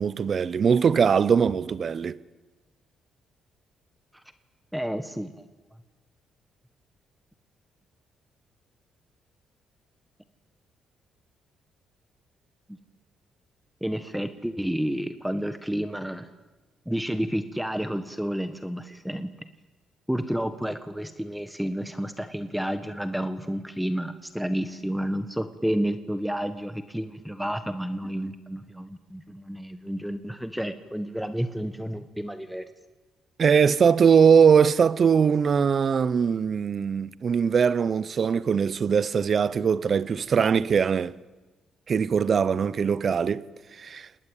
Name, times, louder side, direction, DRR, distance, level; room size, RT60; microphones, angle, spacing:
voice 1, 0.0-2.2 33.4-41.1 41.9-43.5 43.8-44.1, right 6 dB, 50° right, 0.9 m, -21 dB
voice 2, 4.7-5.4 12.7-12.8 13.8-16.3 16.8-19.3 20.1-32.6, equal, 5° right, 1.5 m, -30 dB
29.0 x 20.0 x 9.1 m
cardioid pair, 90°, 0 cm